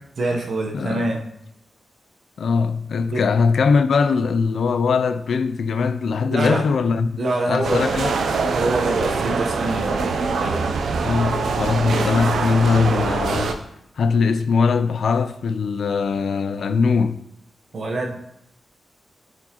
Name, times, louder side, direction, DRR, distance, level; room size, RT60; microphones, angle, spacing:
voice 1, 0.2-1.2 3.1-3.2 6.3-6.6 7.2-7.8 8.5-10.1 10.4-10.7 17.7-18.3, right 2 dB, 55° right, 0.9 m, -25 dB
voice 2, 0.7-1.1 2.4-7.1 7.5-8.1 11.0-13.6 14.0-17.2, left 5 dB, 70° left, 0.3 m, -21 dB
sound 1, 7.6-13.5, right 4 dB, 85° right, 0.5 m, -23 dB
9.5 x 4.5 x 2.9 m
wide cardioid pair, 165°, 0 cm